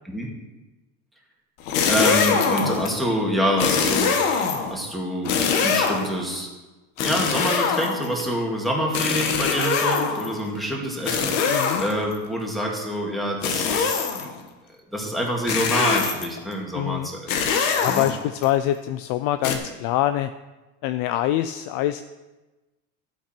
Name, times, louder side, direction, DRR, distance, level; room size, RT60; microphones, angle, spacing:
sound 1, 1.6-2.9 3.6-4.8 5.2-6.2 7.0-8.2 8.9-10.4 11.0-12.2 13.4-14.3 15.5-16.4 17.3-18.4 19.4-19.6, left 6 dB, 90° left, 1.7 m, -23 dB
voice 1, 1.9-6.5 7.0-14.3 14.9-17.3 17.9-18.1, equal, ahead, -2 dB, 2.2 m, -26 dB
voice 2, 11.4-11.8 16.7-17.1 17.7-20.3 20.8-22.0, left 13 dB, 65° left, 11 dB, 0.5 m, -24 dB
12.0 x 8.4 x 4.5 m, 1.1 s
supercardioid pair, 130°, 38 cm